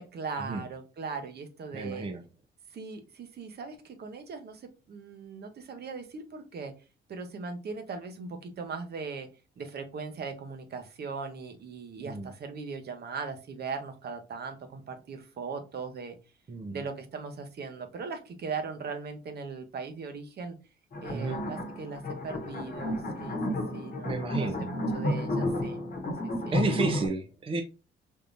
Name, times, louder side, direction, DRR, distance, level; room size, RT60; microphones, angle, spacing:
voice 1, 0.0-2.1 2.7-6.7 7.1-9.3 9.6-16.2 16.7-20.6 21.0-23.4 23.7-25.8 26.2-26.6, right 5 dB, 55° right, 6 dB, 0.8 m, -39 dB
voice 2, 1.7-2.2 12.0-12.3 16.5-16.8 21.1-21.4 24.0-24.7 26.5-27.6, right 3 dB, 25° right, 5 dB, 0.5 m, -31 dB
sound 1, 20.9-27.1, left 1 dB, 50° left, 1.0 m, -32 dB
3.6 x 2.8 x 2.5 m, 0.30 s
cardioid pair, 90°, 20 cm